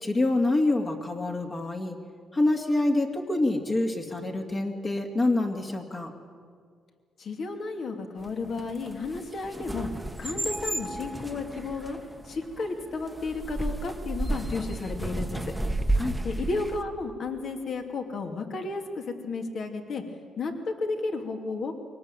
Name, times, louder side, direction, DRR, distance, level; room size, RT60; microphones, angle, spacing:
voice 1, 0.0-2.0 2.3-6.1 16.0-16.2, left 2 dB, 30° left, 1 dB, 2.2 m, -26 dB
voice 2, 7.2-9.9 10.2-12.0 12.2-15.5 16.2-20.0 20.4-21.7, left 3 dB, 60° left, 4 dB, 2.7 m, -33 dB
sound 1, 8.2-16.8, right 1 dB, 5° right, 1.2 m, -33 dB
23.0 x 18.5 x 9.2 m, 2.1 s
cardioid pair, 90°, 0 cm